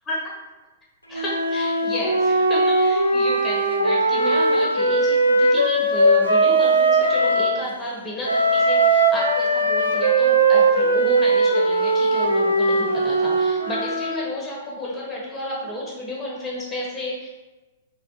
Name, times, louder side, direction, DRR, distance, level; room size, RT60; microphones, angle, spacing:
Wind instrument woodwind instrument, 1.1-7.5 8.2-14.3, right 2 dB, 90° left, 0.5 m, -19 dB
voice 1, 1.1-17.3, left 1 dB, 10° left, -4 dB, 1.3 m, -31 dB
4.1 x 2.9 x 2.6 m, 1.1 s
figure-of-eight pair, 105°, 0 cm